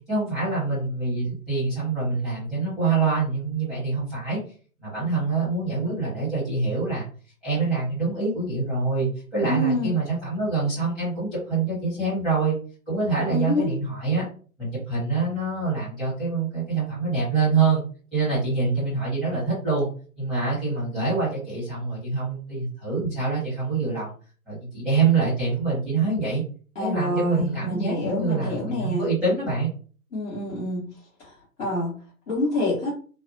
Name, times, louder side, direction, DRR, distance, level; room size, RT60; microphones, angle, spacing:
voice 1, 0.1-4.4 4.8-7.0 7.4-12.5 12.9-14.2 14.6-17.8 18.1-19.9 20.2-24.1 24.5-26.4 26.8-29.7, right 4 dB, ahead, -11 dB, 0.9 m, -25 dB
voice 2, 9.4-9.9 13.3-13.7 26.7-29.1 30.1-30.9 31.2-31.3 31.6-32.0 32.3-32.9, left 1 dB, 60° left, -7 dB, 1.2 m, -26 dB
2.6 x 2.2 x 2.6 m, 0.40 s
figure-of-eight pair, 125°, 44 cm